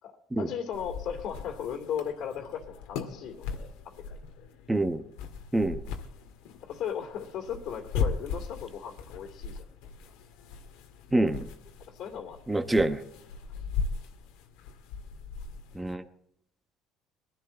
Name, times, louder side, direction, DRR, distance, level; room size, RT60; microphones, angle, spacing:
voice 1, 0.0-4.2 6.6-9.7 11.9-12.6, left 8 dB, 65° left, 3 dB, 2.5 m, -37 dB
sound 1, 0.7-15.9, left 5 dB, 85° left, 1.8 m, -38 dB
voice 2, 4.7-5.0 5.5-5.8 11.1-11.5 12.5-13.0 15.7-16.0, right 2 dB, 10° right, 7 dB, 1.0 m, -26 dB
21.0 x 11.5 x 4.3 m, 0.75 s
cardioid pair, 100°, 0 cm